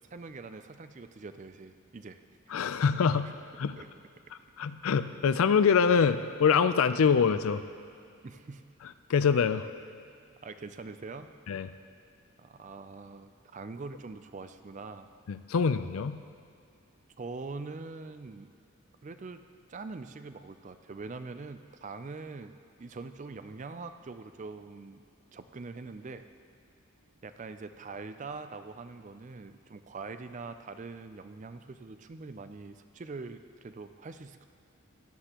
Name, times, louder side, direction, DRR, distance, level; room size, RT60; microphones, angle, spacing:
voice 1, 0.1-2.2 3.2-3.3 3.7-3.9 8.2-8.6 10.4-11.3 12.4-15.1 17.2-18.5 19.0-25.0 25.3-26.2 27.2-34.5, right 3 dB, 35° right, 10 dB, 0.4 m, -43 dB
voice 2, 2.5-3.3 3.6-3.8 4.6-7.6 9.1-9.7 11.5-11.7 15.3-16.2, left 6 dB, 70° left, 12 dB, 0.4 m, -25 dB
16.5 x 11.0 x 3.0 m, 2.4 s
head